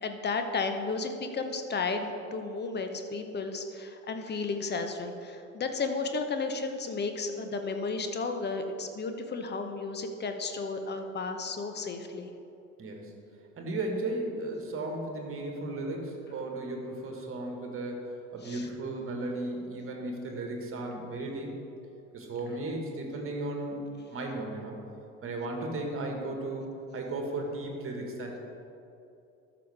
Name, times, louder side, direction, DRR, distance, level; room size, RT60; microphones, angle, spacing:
voice 1, 0.0-12.3 18.4-18.7, left 4 dB, 25° left, 6 dB, 0.9 m, -33 dB
voice 2, 12.8-13.1 13.6-21.5 22.1-23.8 24.1-24.8 25.2-26.7 26.9-28.4, right 2 dB, 30° right, 1 dB, 1.7 m, -35 dB
13.0 x 5.9 x 3.5 m, 2.7 s
figure-of-eight pair, 65°, 41 cm